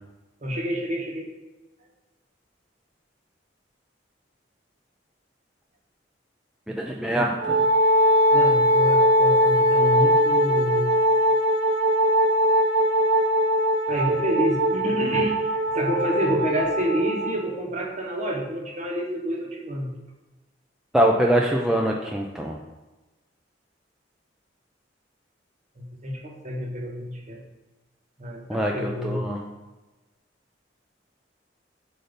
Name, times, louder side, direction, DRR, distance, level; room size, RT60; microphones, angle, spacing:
voice 1, 0.4-1.3 8.3-10.9 13.9-19.9 25.8-27.4 28.2-29.2, equal, 40° right, 0 dB, 1.1 m, -28 dB
voice 2, 6.7-7.6 20.9-22.6 28.5-29.4, right 1 dB, 5° right, -1 dB, 0.4 m, -23 dB
Wind instrument woodwind instrument, 7.4-17.4, equal, 80° right, 1.1 m, -21 dB
7.8 x 2.7 x 5.2 m, 1.1 s
head